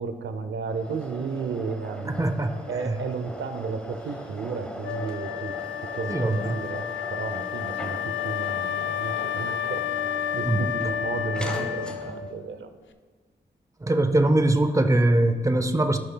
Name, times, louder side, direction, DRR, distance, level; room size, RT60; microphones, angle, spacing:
voice 1, 0.0-2.2 2.7-5.5 5.9-6.9 7.1-12.7, right 5 dB, 90° right, 9 dB, 0.7 m, -33 dB
sound 1, 0.7-12.4, equal, 5° left, 1.0 m, -40 dB
voice 2, 2.0-2.5 2.9-3.0 6.1-6.6 10.5-10.7 13.8-16.0, right 1 dB, 15° right, 8 dB, 0.7 m, -22 dB
Wind instrument woodwind instrument, 4.8-12.4, left 10 dB, 85° left, 0.4 m, -31 dB
15.5 x 5.5 x 2.3 m, 1.4 s
cardioid pair, 60°, 19 cm